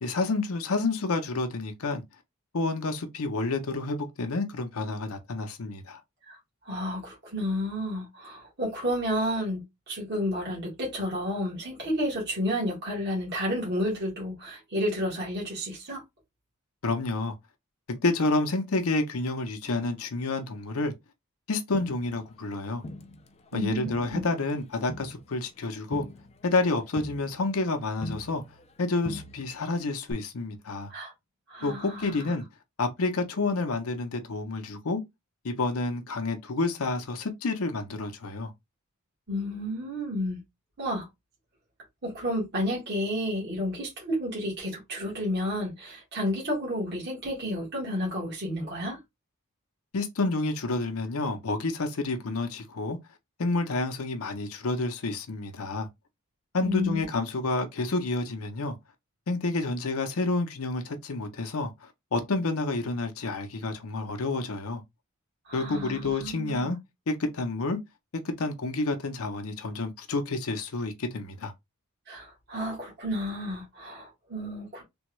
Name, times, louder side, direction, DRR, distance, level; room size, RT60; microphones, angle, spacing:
voice 1, 0.0-2.0 2.5-6.0 16.8-17.3 17.9-20.9 21.5-22.8 23.5-26.1 26.4-28.4 28.8-30.9 31.6-32.4 32.8-35.0 35.4-38.5 49.9-53.0 53.4-55.9 56.5-58.8 59.3-64.8 65.5-66.8 67.1-67.8 68.1-71.5, left 3 dB, 75° left, 0.6 m, -29 dB
voice 2, 6.6-16.0 23.5-24.2 30.9-31.1 31.5-32.3 39.3-40.4 40.8-41.1 42.0-49.0 56.6-57.0 65.5-66.7 72.1-74.8, equal, 50° right, 1.4 m, -31 dB
Crowd, 21.7-23.5 23.9-28.8 29.0-29.7 30.1-30.2, left 1 dB, 30° left, 0.4 m, -42 dB
3.4 x 2.2 x 3.0 m
head